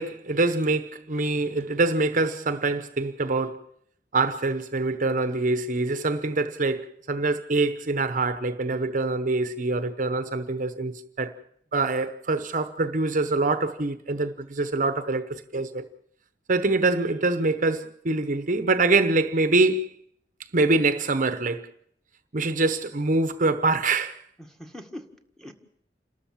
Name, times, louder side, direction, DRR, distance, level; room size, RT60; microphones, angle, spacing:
voice 1, 0.0-3.6 4.1-11.3 11.7-15.9 16.5-19.9 20.5-21.7 22.3-24.2, right 3 dB, 50° right, 0.9 m, -25 dB
voice 2, 24.4-25.5, left 1 dB, 5° left, 1.8 m, -42 dB
28.5 x 13.0 x 7.4 m
head